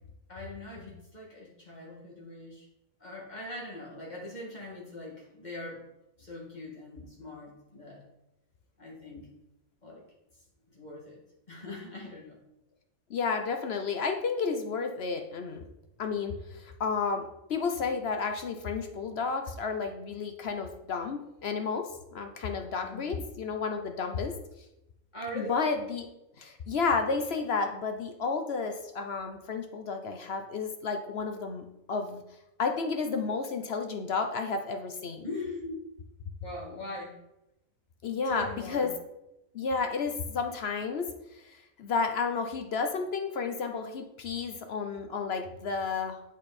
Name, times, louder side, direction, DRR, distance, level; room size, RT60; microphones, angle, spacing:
voice 1, 0.3-2.7 3.0-5.9 6.2-8.0 8.8-9.3 9.8-10.0 10.7-11.2 11.5-12.4 22.8-23.3 25.1-25.6 35.2-35.7 36.4-37.1 38.2-38.9, left 1 dB, 30° left, -4 dB, 2.3 m, -41 dB
voice 2, 13.1-15.6 16.0-24.3 25.3-26.1 26.4-32.2 32.6-35.2 38.0-38.9 39.5-41.1 41.8-46.2, left 5 dB, 55° left, 5 dB, 0.8 m, -31 dB
8.5 x 5.2 x 4.2 m, 0.88 s
omnidirectional pair, 1.5 m